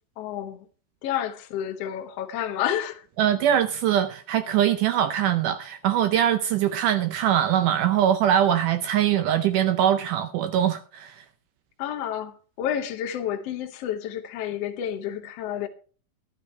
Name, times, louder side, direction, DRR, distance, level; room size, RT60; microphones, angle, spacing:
voice 1, 0.2-0.6 1.0-3.1 11.8-15.7, left 10 dB, 80° left, 1.4 m, -30 dB
voice 2, 3.2-11.2, right 10 dB, 85° right, 1.8 m, -22 dB
12.0 x 10.0 x 4.3 m
omnidirectional pair, 4.4 m